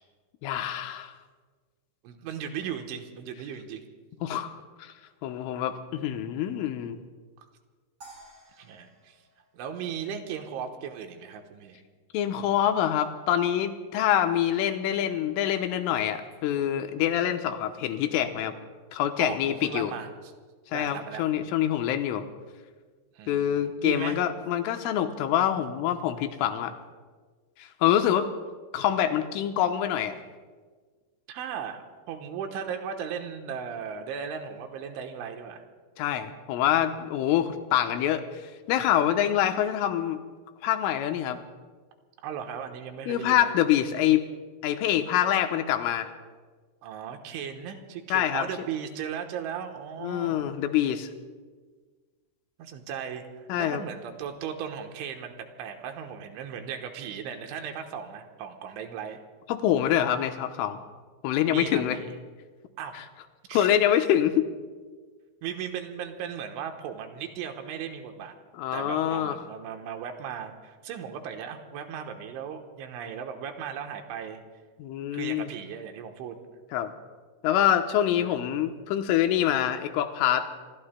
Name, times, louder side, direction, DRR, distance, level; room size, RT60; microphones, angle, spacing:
voice 1, 0.4-1.2 4.2-4.5 4.8-4.9 5.2-7.0 12.1-18.5 18.9-19.9 20.7-22.2 23.3-26.7 27.6-28.3 28.7-30.2 36.0-40.2 40.6-41.4 43.1-44.2 44.6-46.1 48.1-48.5 50.0-51.1 53.5-53.8 59.5-60.8 61.2-62.0 63.5-64.5 68.5-69.4 74.8-75.5 76.7-76.9 77.4-80.5, left 11 dB, 90° left, 6 dB, 3.4 m, -25 dB
voice 2, 2.0-3.8 8.6-9.2 9.5-11.8 19.2-20.3 20.7-21.3 23.2-24.2 31.3-35.6 42.2-43.5 46.8-50.5 52.6-53.2 53.6-55.3 55.6-59.2 61.5-62.2 62.8-63.0 63.5-63.7 65.4-68.3 68.7-74.4 75.1-76.4 78.2-78.3, right 8 dB, 80° right, 5 dB, 3.4 m, -37 dB
sound 1, 8.0-10.4, right 2 dB, 40° right, 6.1 m, -53 dB
27.5 x 23.5 x 2.2 m, 1.5 s
omnidirectional pair, 5.6 m